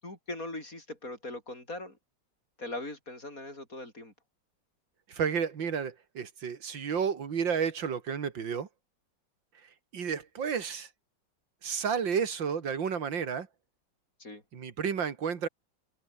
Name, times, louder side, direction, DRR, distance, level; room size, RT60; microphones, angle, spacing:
voice 1, 0.0-2.0 2.6-4.1 14.2-14.4, left 2 dB, 45° left, 7.1 m, -40 dB
voice 2, 5.1-8.7 9.9-10.9 11.6-13.5 14.5-15.5, right 6 dB, 80° right, 2.7 m, -31 dB
omnidirectional pair, 2.0 m